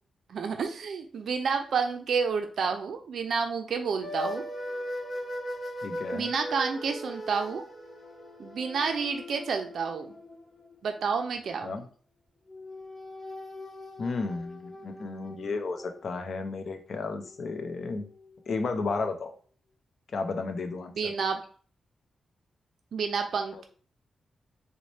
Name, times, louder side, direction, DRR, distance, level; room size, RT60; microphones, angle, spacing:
voice 1, 0.3-4.4 6.1-7.6 8.4-10.2 10.8-11.8 21.0-21.4 22.9-23.7, right 5 dB, 75° right, 5 dB, 0.3 m, -30 dB
sound 1, 4.0-11.4 12.5-18.6, equal, 30° left, 0.9 m, -40 dB
voice 2, 5.8-6.3 11.6-11.9 14.0-18.0 18.5-19.3 20.1-21.1 23.5-23.6, left 3 dB, 60° left, 7 dB, 0.5 m, -33 dB
4.0 x 2.1 x 3.1 m, 0.43 s
cardioid pair, 95°, 0 cm